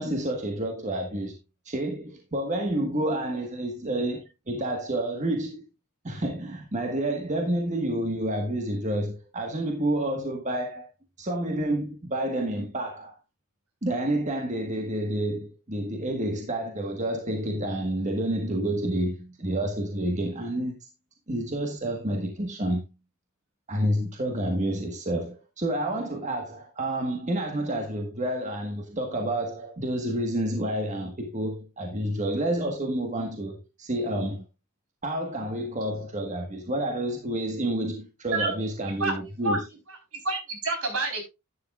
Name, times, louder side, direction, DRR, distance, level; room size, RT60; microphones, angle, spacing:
voice 1, 0.0-1.4 1.6-5.7 6.0-10.9 11.2-13.1 13.8-20.8 21.3-22.8 23.7-34.4 35.0-39.7, right 1 dB, 35° right, 1.5 m, -29 dB
voice 2, 40.2-41.2, right 3 dB, 75° right, 4.1 m, -27 dB
11.5 x 9.4 x 2.4 m
head